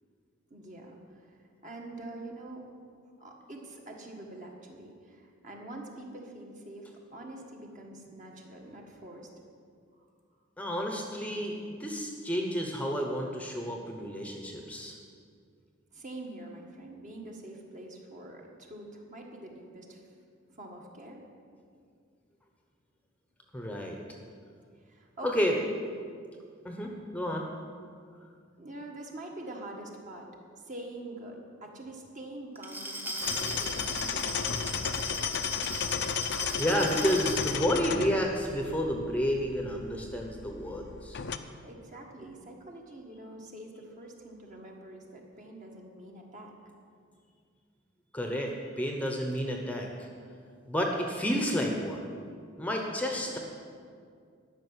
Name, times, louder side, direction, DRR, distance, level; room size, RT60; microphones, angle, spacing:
voice 1, 0.5-2.7 3.0-9.3 15.9-20.1 20.5-21.2 24.8-25.7 28.6-30.3 30.6-35.1 41.6-46.5, right 1 dB, 40° right, 0 dB, 1.7 m, -45 dB
voice 2, 10.6-15.0 23.5-24.0 25.2-25.5 26.6-27.5 36.6-41.2 48.1-50.1 50.7-52.1 52.6-53.4, equal, 5° left, 1 dB, 0.9 m, -30 dB
Glass, 32.5-37.6, right 1 dB, 10° right, 1.2 m, -37 dB
sound 1, 33.2-41.4, left 7 dB, 55° left, 0.6 m, -34 dB
12.5 x 6.1 x 9.6 m, 2.2 s
head